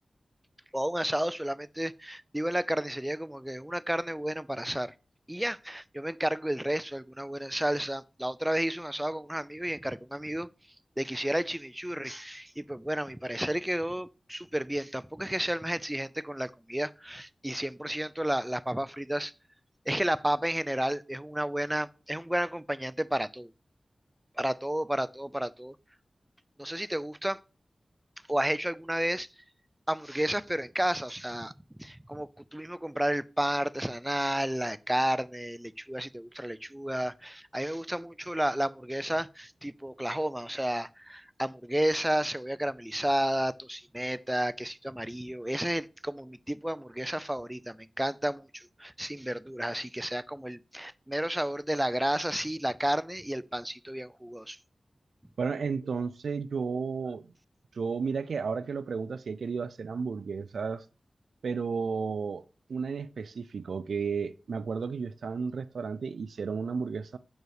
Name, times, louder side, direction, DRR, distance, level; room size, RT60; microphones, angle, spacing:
voice 1, 0.7-4.9 5.3-10.5 11.0-19.3 19.9-23.5 24.4-25.8 26.6-27.4 28.3-29.3 29.9-31.5 31.8-54.6, right 1 dB, 10° right, 0.4 m, -32 dB
voice 2, 55.4-57.3 57.7-60.8 61.4-62.4 62.7-67.2, right 5 dB, 90° right, 0.3 m, -33 dB
6.4 x 4.7 x 4.8 m
cardioid pair, 45°, 0 cm